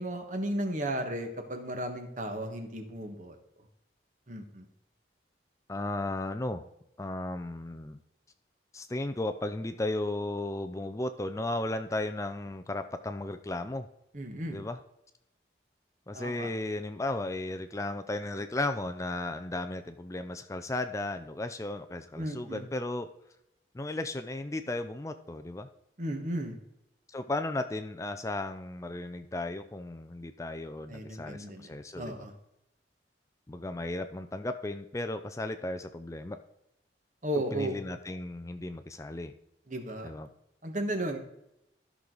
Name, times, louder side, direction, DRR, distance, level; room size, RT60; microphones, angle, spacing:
voice 1, 0.0-3.4 4.3-4.7 14.1-14.6 16.1-16.5 22.1-22.7 26.0-26.6 30.9-32.3 37.2-37.8 39.7-40.1 40.6-41.2, right 1 dB, 45° right, 6 dB, 1.5 m, -34 dB
voice 2, 5.7-6.6 7.0-8.0 8.7-13.9 14.5-14.8 16.1-23.1 23.7-25.7 27.1-32.3 33.5-36.4 37.5-39.3 40.0-40.3, left 2 dB, 15° left, 8 dB, 0.4 m, -35 dB
13.5 x 6.2 x 3.9 m, 0.83 s
head